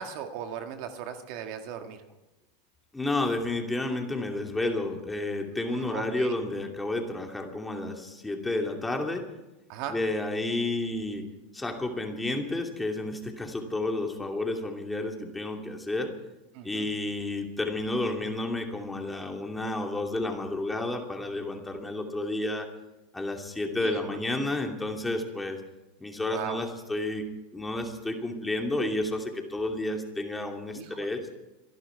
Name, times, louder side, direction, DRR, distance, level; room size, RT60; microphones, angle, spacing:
voice 1, 0.0-2.0 5.7-6.3 9.7-10.0 16.5-16.9 23.8-24.2 26.3-26.6 30.7-31.0, right 8 dB, 60° right, 6 dB, 1.8 m, -38 dB
voice 2, 2.9-9.3 9.9-11.3 11.5-16.1 16.6-22.7 23.1-25.6 26.0-27.3 27.5-31.3, left 2 dB, 10° left, 2 dB, 2.7 m, -31 dB
27.0 x 11.5 x 4.6 m, 1.0 s
hypercardioid pair, 110°, 0 cm